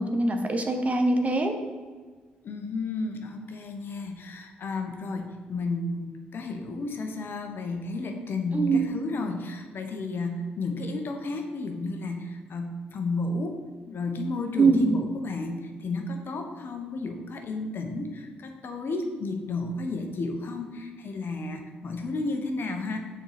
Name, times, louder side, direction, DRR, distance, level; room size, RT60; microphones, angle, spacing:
voice 1, 0.0-1.5 8.5-8.9 14.6-14.8, right 3 dB, 35° right, 5 dB, 1.1 m, -23 dB
voice 2, 2.4-13.6 13.9-23.0, left 3 dB, 60° left, 4 dB, 1.0 m, -32 dB
6.5 x 4.6 x 5.0 m, 1.4 s
supercardioid pair, 50°, 4 cm